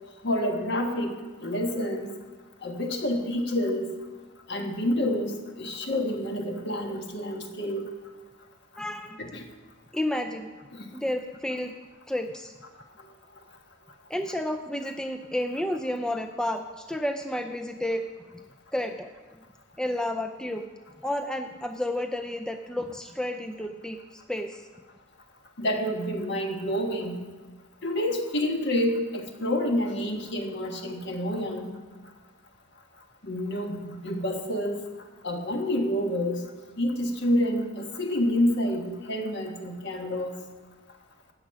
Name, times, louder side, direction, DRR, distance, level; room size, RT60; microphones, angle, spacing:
voice 1, 0.2-1.1 1.4-2.2 2.6-3.9 4.5-7.8 9.2-9.4 10.7-10.9 25.6-27.2 27.8-31.7 33.2-34.8 35.2-36.4 36.8-40.4, left 1 dB, 60° left, 3 dB, 1.5 m, -28 dB
voice 2, 8.8-9.2 9.9-10.5 10.9-11.7 12.1-12.5 14.1-18.0 18.3-18.4 18.7-19.1 19.8-20.7 21.0-24.6, left 1 dB, 5° left, 5 dB, 0.4 m, -31 dB
13.5 x 5.1 x 8.8 m, 1.3 s
head